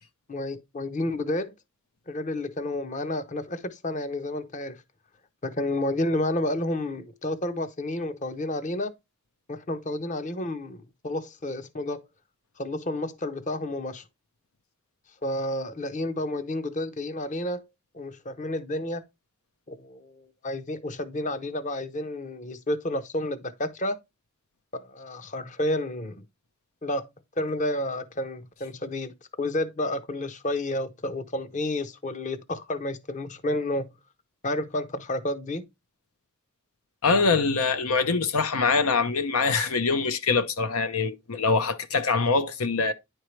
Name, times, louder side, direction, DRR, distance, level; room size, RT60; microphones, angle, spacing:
voice 1, 0.3-1.5 2.1-4.8 5.4-8.9 9.5-12.0 12.6-14.1 15.2-17.6 17.9-19.0 19.7-24.0 24.7-26.2 26.8-27.1 27.4-34.0 34.4-35.7, left 1 dB, 35° left, 0.7 m, -30 dB
voice 2, 37.0-42.9, left 4 dB, 85° left, 0.8 m, -24 dB
10.0 x 4.5 x 3.1 m
head